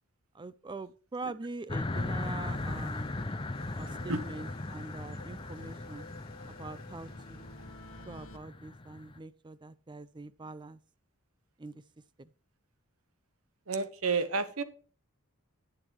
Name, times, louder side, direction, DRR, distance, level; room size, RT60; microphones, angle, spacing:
voice 1, 0.3-3.1 3.8-6.1 6.5-7.5 8.1-10.8 11.6-11.8 12.2-12.3, right 3 dB, 20° right, 0.5 m, -44 dB
sound 1, 1.7-9.2, left 2 dB, 25° left, 0.7 m, -38 dB
sound 2, 1.8-8.1, left 1 dB, 45° left, 2.1 m, -53 dB
sound 3, 2.0-2.1 2.4-2.5 2.8-2.9 3.2-3.3 3.6-4.9 5.2-8.4, left 2 dB, 75° left, 1.2 m, -53 dB
voice 2, 3.9-4.2 13.7-14.6, right 4 dB, 85° right, 1.2 m, -31 dB
11.0 x 9.0 x 3.0 m
head